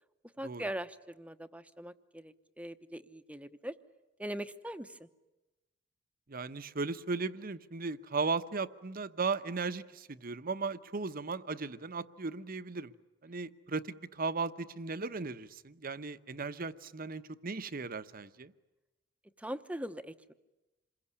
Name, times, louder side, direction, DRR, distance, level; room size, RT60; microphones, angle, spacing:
voice 1, 0.4-3.7 4.2-5.1 19.4-20.3, right 1 dB, 5° right, 10 dB, 0.9 m, -41 dB
voice 2, 6.3-12.9 13.2-18.5, right 4 dB, 50° right, 12 dB, 0.9 m, -36 dB
27.5 x 22.0 x 9.8 m, 1.1 s
head